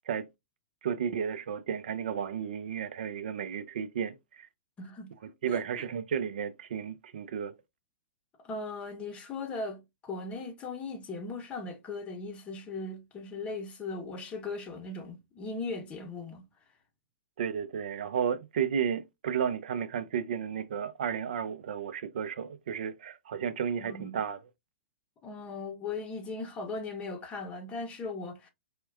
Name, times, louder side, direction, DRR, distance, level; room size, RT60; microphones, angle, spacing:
voice 1, 0.8-4.5 5.2-7.5 17.4-24.4, right 8 dB, 60° right, 0.4 m, -33 dB
voice 2, 4.8-5.1 5.5-5.6 8.4-16.4 23.8-24.2 25.2-28.5, left 3 dB, 20° left, 0.7 m, -38 dB
4.2 x 2.2 x 2.3 m
figure-of-eight pair, 110°, 6 cm